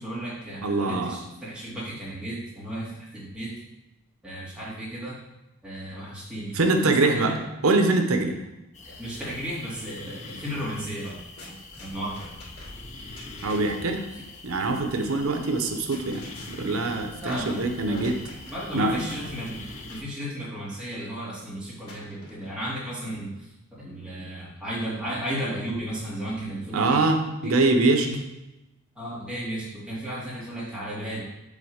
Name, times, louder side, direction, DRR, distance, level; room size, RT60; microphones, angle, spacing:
voice 1, 0.0-3.5 4.2-5.2 5.6-7.4 8.8-11.2 11.8-12.3 17.2-18.1 18.5-19.6 19.9-23.5 23.8-27.0 27.4-27.6 28.0-28.2 29.0-31.2, equal, 5° right, -8 dB, 2.4 m, -34 dB
voice 2, 0.6-1.2 6.5-7.4 7.6-8.4 13.4-14.1 14.4-18.2 18.7-19.0 26.7-28.1, right 3 dB, 80° right, 5 dB, 0.8 m, -23 dB
sound 1, 8.7-20.0, left 2 dB, 35° left, 0.7 m, -43 dB
sound 2, 11.0-13.9 15.5-18.7 19.1-20.1 21.9-22.8, left 1 dB, 85° left, 2.5 m, -47 dB
7.4 x 3.6 x 6.3 m, 0.97 s
head